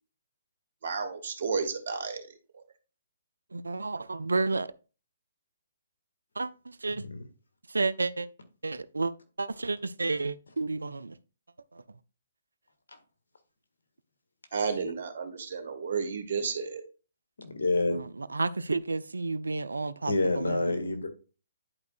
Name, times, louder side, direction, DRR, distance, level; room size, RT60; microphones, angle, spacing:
voice 1, 0.8-2.3 2.5-2.6 14.5-16.8, right 5 dB, 60° right, 1.7 m, -32 dB
voice 2, 3.5-4.7 6.4-7.1 7.7-8.3 8.6-9.1 9.4-11.1 18.0-20.7, right 3 dB, 80° right, 0.4 m, -31 dB
voice 3, 17.4-18.0 20.0-21.1, left 2 dB, 75° left, 1.7 m, -28 dB
11.0 x 4.6 x 2.4 m
figure-of-eight pair, 135°, 0 cm